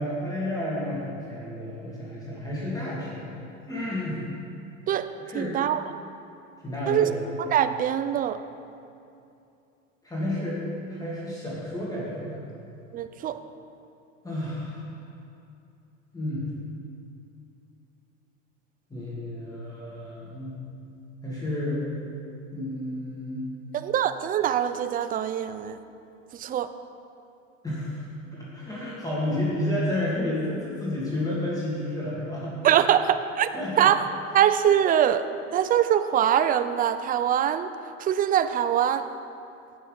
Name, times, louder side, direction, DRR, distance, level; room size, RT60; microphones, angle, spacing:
voice 1, 0.0-3.4 3.7-4.2 5.2-5.6 6.6-7.2 10.0-10.6 10.9-12.4 14.2-14.9 16.1-16.5 18.9-20.6 21.2-21.8 22.5-23.4 27.6-28.0 28.3-32.6 33.5-33.9, left 1 dB, 10° left, -8 dB, 2.6 m, -31 dB
voice 2, 5.3-5.8 6.9-7.1 7.4-8.4 12.9-13.4 23.7-25.8 26.4-26.7 32.6-33.5 33.8-34.0 34.3-35.2 35.5-37.7 38.0-39.1, right 10 dB, 25° right, 11 dB, 0.4 m, -23 dB
16.0 x 6.1 x 4.1 m, 2.6 s
hypercardioid pair, 80°, 39 cm